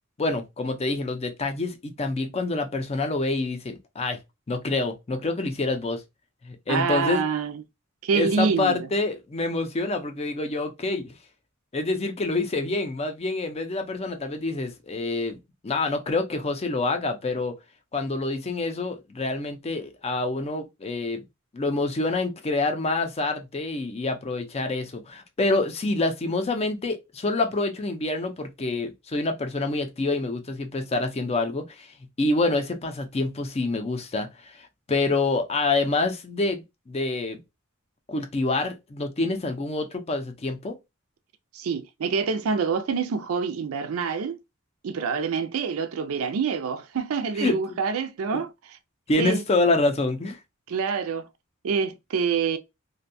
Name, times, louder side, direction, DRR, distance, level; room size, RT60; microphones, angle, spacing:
voice 1, 0.2-4.2 4.5-6.0 6.4-7.3 8.1-11.1 11.7-15.4 15.6-17.5 17.9-21.2 21.5-37.4 38.1-40.8 47.4-47.6 48.3-48.4 49.1-50.4, left 2 dB, 30° left, 0.4 m, -27 dB
voice 2, 6.7-7.6 8.0-8.8 41.5-44.4 44.8-48.5 49.2-49.4 50.7-51.3 51.6-52.6, right 5 dB, 80° right, 0.4 m, -26 dB
2.6 x 2.2 x 2.6 m
head